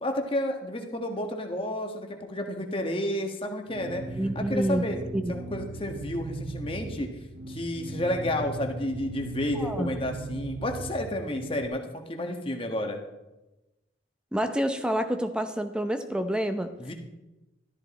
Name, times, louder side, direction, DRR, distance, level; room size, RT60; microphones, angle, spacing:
voice 1, 0.0-5.0 5.3-7.1 7.5-13.0 16.8-16.9, left 1 dB, 25° left, 4 dB, 1.3 m, -31 dB
sound 1, 3.7-11.7, right 2 dB, 60° right, 0.7 m, -38 dB
voice 2, 4.2-4.9 5.1-5.4 9.5-9.9 14.3-16.7, equal, 5° right, 8 dB, 0.7 m, -28 dB
13.5 x 13.0 x 4.2 m, 1.0 s
head